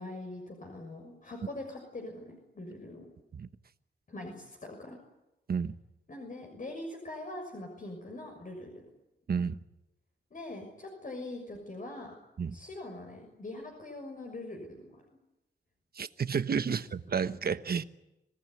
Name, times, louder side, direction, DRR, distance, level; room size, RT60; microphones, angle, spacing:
voice 1, 0.0-3.1 4.1-5.0 6.1-8.8 10.3-12.1 12.5-15.0, left 2 dB, 50° left, 6.5 m, -43 dB
voice 2, 9.3-9.6 12.4-12.5 16.0-17.8, right 6 dB, 60° right, 1.1 m, -31 dB
27.0 x 18.5 x 9.7 m
cardioid pair, 75°, 18 cm